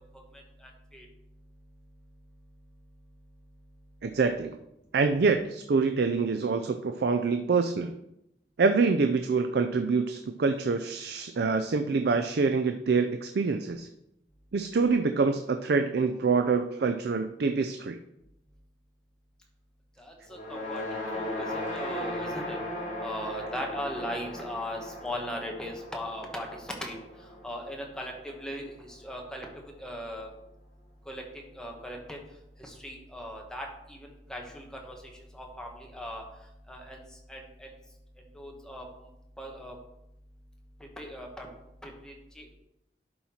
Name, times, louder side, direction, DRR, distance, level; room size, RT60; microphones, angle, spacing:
voice 1, 0.6-1.0 20.0-20.8 21.1-22.6 23.0-26.9 27.4-29.5 29.8-30.3 31.1-31.2 31.5-32.2 32.6-35.0 35.3-36.2 36.7-37.0 37.3-37.7 38.3-38.8 39.4-39.8 41.0-41.5 41.8-42.4, equal, 5° left, 0 dB, 1.2 m, -38 dB
voice 2, 4.0-4.6 4.9-7.9 8.6-13.9 14.5-18.0, right 4 dB, 65° right, 7 dB, 0.4 m, -26 dB
sound 1, 20.3-28.6, left 1 dB, 45° left, 2.1 m, -37 dB
11.0 x 4.2 x 4.4 m, 0.86 s
head